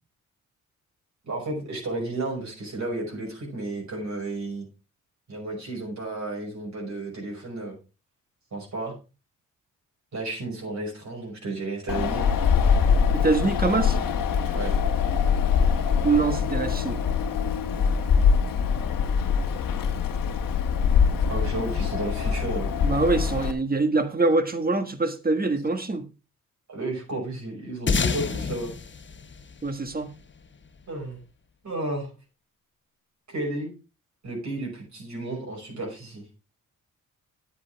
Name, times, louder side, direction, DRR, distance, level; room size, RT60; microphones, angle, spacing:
voice 1, 1.2-4.6 5.3-7.8 8.5-9.0 10.1-12.3 14.5-14.7 21.3-22.7 26.7-28.7 30.9-31.2 31.6-32.1 33.3-33.7 34.2-36.2, right 2 dB, 55° right, 5.9 m, -32 dB
Wind, 11.9-23.5, left 6 dB, 80° left, 1.3 m, -23 dB
voice 2, 13.1-14.0 16.0-17.0 22.8-26.0 29.6-30.1, right 3 dB, 25° right, 1.6 m, -24 dB
sound 1, 27.9-30.6, left 5 dB, 35° left, 1.1 m, -28 dB
10.5 x 8.5 x 3.5 m
cardioid pair, 70°, 33 cm